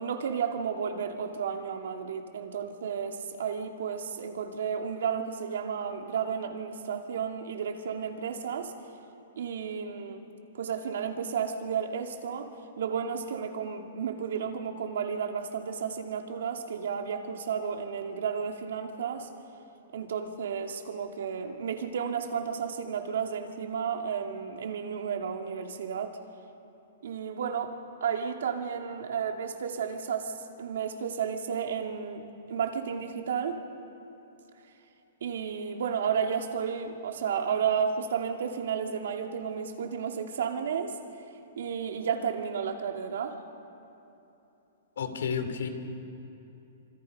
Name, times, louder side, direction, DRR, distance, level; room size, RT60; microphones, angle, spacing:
voice 1, 0.0-8.7 9.4-10.2 10.5-12.5 12.8-19.3 19.9-26.2 27.0-27.8 28.0-32.2 32.5-33.6 35.2-41.0 41.6-43.4, right 7 dB, 65° right, 4 dB, 2.4 m, -32 dB
voice 2, 45.0-45.7, left 6 dB, 80° left, 8 dB, 2.8 m, -31 dB
27.5 x 26.5 x 5.4 m, 2.9 s
hypercardioid pair, 175°, 0 cm